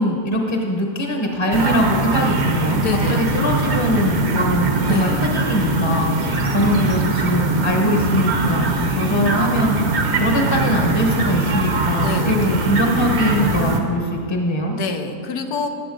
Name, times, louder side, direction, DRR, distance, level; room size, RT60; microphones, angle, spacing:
voice 1, 0.0-2.8 3.1-6.1 6.5-14.8, equal, 20° left, 1 dB, 0.9 m, -21 dB
sound 1, 1.5-13.8, right 3 dB, 50° right, 1.1 m, -21 dB
voice 2, 2.8-3.2 4.9-5.2 6.1-6.5 12.0-12.5 14.7-15.7, left 5 dB, 85° left, 6 dB, 1.3 m, -27 dB
17.0 x 7.9 x 3.8 m, 2.4 s
omnidirectional pair, 1.6 m